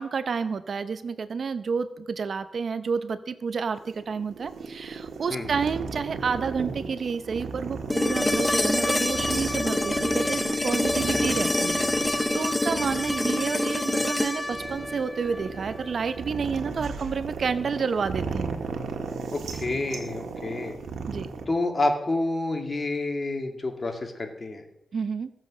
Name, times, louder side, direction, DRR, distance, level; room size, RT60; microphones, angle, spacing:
voice 1, 0.0-18.6 21.1-21.3 24.9-25.3, right 5 dB, 60° right, 11 dB, 0.8 m, -30 dB
sound 1, 3.8-21.5, right 5 dB, 85° right, 1.7 m, -36 dB
sound 2, 7.9-16.0 18.1-18.2, left 1 dB, 15° left, 0.7 m, -26 dB
voice 2, 19.3-20.8 21.5-24.6, left 2 dB, 35° left, 4 dB, 2.4 m, -28 dB
16.5 x 7.5 x 6.3 m, 0.82 s
cardioid pair, 75°, 0 cm